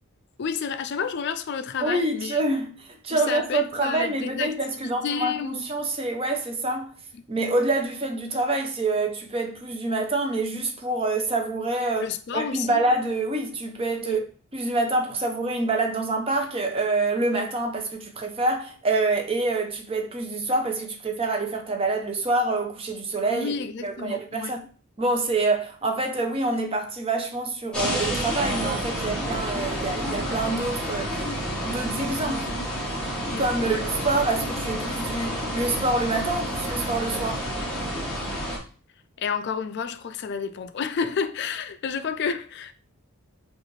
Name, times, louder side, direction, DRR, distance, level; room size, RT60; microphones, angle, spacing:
voice 1, 0.4-2.4 3.1-5.7 7.1-7.2 12.0-12.8 14.0-14.2 23.3-24.6 33.3-33.8 39.2-42.7, left 6 dB, 50° left, 0.3 m, -30 dB
voice 2, 1.8-7.0 7.3-12.1 12.3-14.2 14.5-23.5 23.8-24.6 25.0-31.1 31.6-32.5 33.4-37.4, right 2 dB, 25° right, 0.5 m, -26 dB
sound 1, 27.7-38.6, equal, 5° left, 0.9 m, -29 dB
5.0 x 2.4 x 3.1 m
head